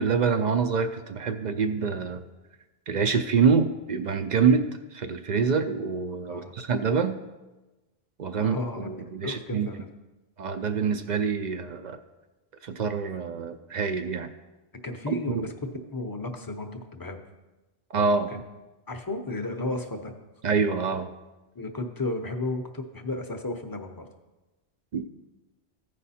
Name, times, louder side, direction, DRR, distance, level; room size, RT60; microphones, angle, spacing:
voice 1, 0.0-2.2 2.9-7.2 8.2-9.7 10.4-12.0 12.6-14.3 15.1-15.5 17.9-18.3 20.4-21.1 24.9-25.0, right 5 dB, 55° right, 9 dB, 0.5 m, -26 dB
voice 2, 8.4-9.9 14.8-17.2 18.3-18.4 18.9-20.1 21.5-24.1, left 2 dB, 25° left, 6 dB, 0.6 m, -33 dB
14.5 x 5.0 x 4.2 m, 1.1 s
omnidirectional pair, 1.1 m